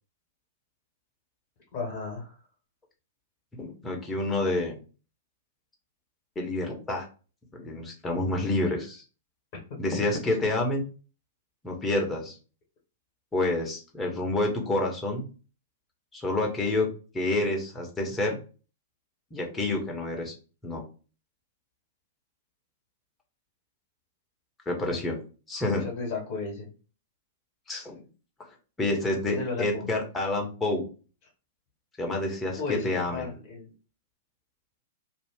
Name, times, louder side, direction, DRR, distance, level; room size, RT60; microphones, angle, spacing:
voice 1, 1.7-2.4 9.5-9.6 25.8-26.7 29.2-29.8 32.6-33.7, left 4 dB, 40° left, -2 dB, 1.1 m, -34 dB
voice 2, 3.6-4.8 6.3-7.0 7.5-9.0 9.8-10.8 11.6-12.3 13.3-15.3 16.1-16.9 17.1-18.4 19.3-20.3 20.6-20.8 24.7-25.2 25.5-25.8 27.7-28.0 28.8-30.9 32.0-33.3, left 2 dB, 15° left, 0 dB, 1.0 m, -28 dB
2.7 x 2.3 x 3.6 m, 0.36 s
figure-of-eight pair, 105°, 0 cm